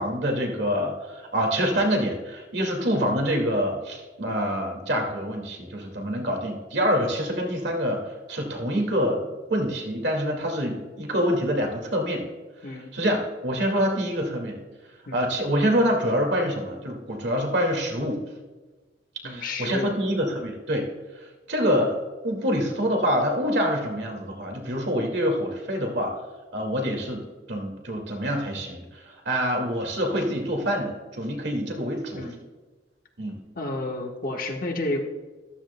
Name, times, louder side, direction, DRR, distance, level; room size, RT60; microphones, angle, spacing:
voice 1, 0.0-12.3 12.9-14.6 15.1-18.2 19.2-20.9 21.2-22.0 22.2-26.2 26.5-32.3 33.2-33.4, equal, 65° right, 2 dB, 2.1 m, -26 dB
voice 2, 19.2-19.9 32.1-32.4 33.6-35.1, left 2 dB, 50° left, 2 dB, 1.2 m, -31 dB
13.5 x 13.0 x 2.2 m, 1.3 s
head